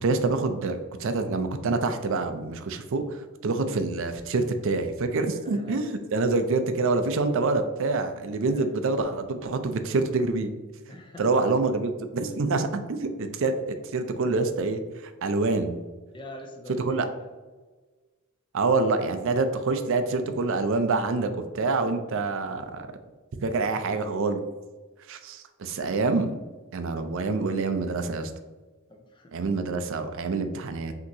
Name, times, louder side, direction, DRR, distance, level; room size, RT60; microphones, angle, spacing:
voice 1, 0.0-10.5 11.2-15.8 16.9-17.1 18.5-22.9 23.4-24.4 25.1-26.3 26.7-28.3 29.3-30.9, right 3 dB, 60° right, 8 dB, 0.4 m, -26 dB
voice 2, 5.3-6.1 8.5-8.7 10.9-11.5 16.1-17.3 23.7-23.9 28.9-29.4 30.3-30.4, left 1 dB, 20° left, 3 dB, 0.4 m, -45 dB
5.9 x 2.9 x 2.7 m, 1.3 s
head